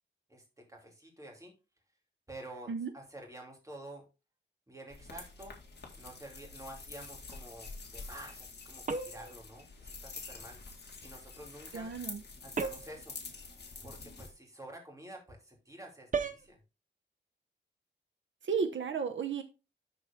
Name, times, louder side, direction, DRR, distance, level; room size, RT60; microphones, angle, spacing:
voice 1, 0.3-1.5 2.3-2.7 2.9-4.0 4.7-5.6 6.0-10.6 11.0-11.9 12.4-13.2 13.8-16.6, right 1 dB, 15° right, 0 dB, 2.7 m, -49 dB
sound 1, 4.9-14.3, left 4 dB, 60° left, 2.1 m, -47 dB
sound 2, 8.9-9.4 12.6-13.0 16.1-16.5, right 4 dB, 40° right, 0.7 m, -34 dB
voice 2, 11.7-12.2 18.4-19.4, right 6 dB, 80° right, 8 dB, 0.8 m, -33 dB
12.0 x 4.3 x 3.6 m, 0.30 s
wide cardioid pair, 140°, 19 cm